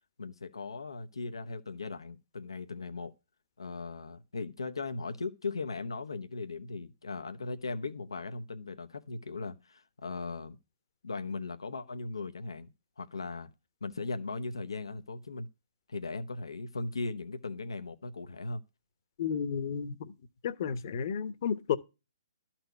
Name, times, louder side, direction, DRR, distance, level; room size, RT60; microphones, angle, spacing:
voice 1, 0.2-3.1 3.6-10.6 11.0-12.7 13.0-13.5 13.8-15.5 15.9-18.6, left 3 dB, 85° left, 0.9 m, -38 dB
voice 2, 19.2-20.1 20.4-21.8, left 7 dB, 50° left, 1.1 m, -32 dB
12.0 x 4.4 x 8.0 m
hypercardioid pair, 135°, 3 cm